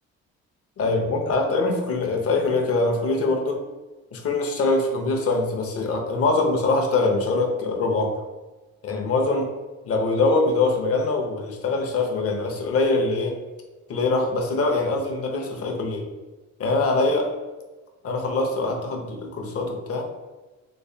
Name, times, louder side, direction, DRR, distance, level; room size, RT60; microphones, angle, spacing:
voice 1, 0.8-3.6 4.1-8.2 8.8-9.5 9.8-13.4 13.9-16.1 16.6-17.3 18.0-20.1, left 3 dB, 50° left, 2 dB, 0.8 m, -23 dB
3.2 x 3.2 x 2.7 m, 1.2 s
cardioid pair, 90°, 30 cm